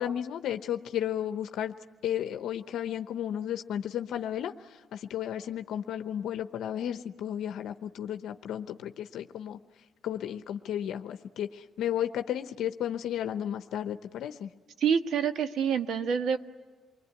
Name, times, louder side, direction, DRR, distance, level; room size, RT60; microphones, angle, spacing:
voice 1, 0.0-1.7 2.0-9.6 10.0-14.5, left 10 dB, 80° left, 8 dB, 0.8 m, -33 dB
voice 2, 14.8-16.4, right 7 dB, 70° right, 8 dB, 1.5 m, -27 dB
28.5 x 21.5 x 9.5 m, 1.4 s
cardioid pair, 90°, 0 cm